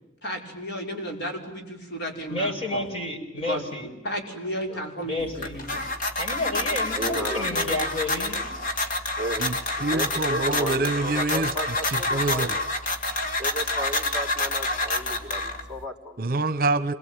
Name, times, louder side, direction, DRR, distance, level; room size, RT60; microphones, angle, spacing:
voice 1, 0.2-2.9 3.4-5.8, equal, 60° left, 5.9 m, -33 dB
voice 2, 2.3-3.9 5.0-5.6 6.2-8.4, left 1 dB, 30° left, 5.8 m, -30 dB
sound 1, 5.2-15.8, left 2 dB, 45° left, 2.8 m, -28 dB
voice 3, 7.0-7.7 9.2-9.5 9.8-12.6 13.4-16.3, equal, 5° right, 3.7 m, -34 dB
voice 4, 9.4-11.5 11.9-12.5 16.2-16.9, right 3 dB, 50° right, 1.2 m, -26 dB
27.0 x 23.0 x 9.3 m
head